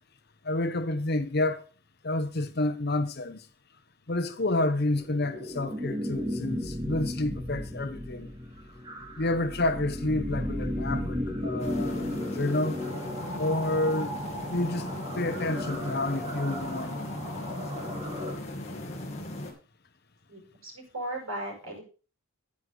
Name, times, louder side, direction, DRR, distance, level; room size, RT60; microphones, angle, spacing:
voice 1, 0.4-1.6 2.0-3.5 4.1-8.3 9.2-12.8 13.4-14.1 14.5-14.9 15.1-17.1, left 2 dB, 50° left, 1.0 m, -29 dB
sound 1, 4.9-18.3, left 1 dB, 25° right, 2.8 m, -35 dB
sound 2, 11.6-19.5, left 1 dB, 30° left, 2.4 m, -37 dB
voice 2, 20.3-21.8, right 1 dB, 80° right, 6.1 m, -37 dB
9.6 x 9.6 x 3.9 m
head